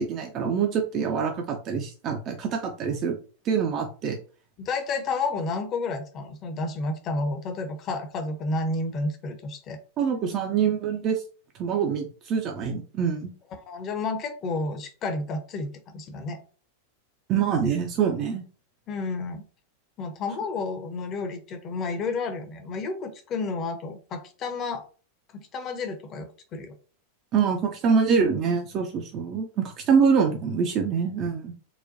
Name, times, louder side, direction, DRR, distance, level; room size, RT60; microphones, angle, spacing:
voice 1, 0.0-3.2 3.4-4.2 10.0-11.2 11.5-13.3 17.3-18.4 27.3-31.5, right 6 dB, 35° right, 3 dB, 0.4 m, -25 dB
voice 2, 4.6-9.8 13.7-16.4 18.9-19.4 20.0-24.8 25.3-26.7, left 3 dB, 30° left, 6 dB, 0.7 m, -31 dB
4.0 x 2.2 x 2.5 m, 0.37 s
figure-of-eight pair, 90°, 0 cm